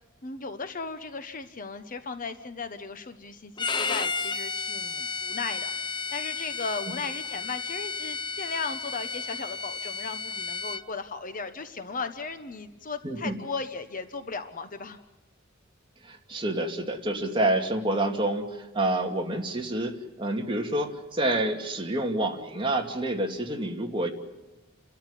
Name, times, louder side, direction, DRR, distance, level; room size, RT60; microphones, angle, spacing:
voice 1, 0.2-5.7 6.1-15.0, left 4 dB, 40° left, 9 dB, 1.1 m, -36 dB
Bowed string instrument, 3.6-10.8, left 5 dB, 20° left, 0.7 m, -33 dB
voice 2, 13.0-13.4 16.0-24.1, right 1 dB, 25° right, 2 dB, 2.5 m, -28 dB
30.0 x 13.5 x 10.0 m, 1.1 s
head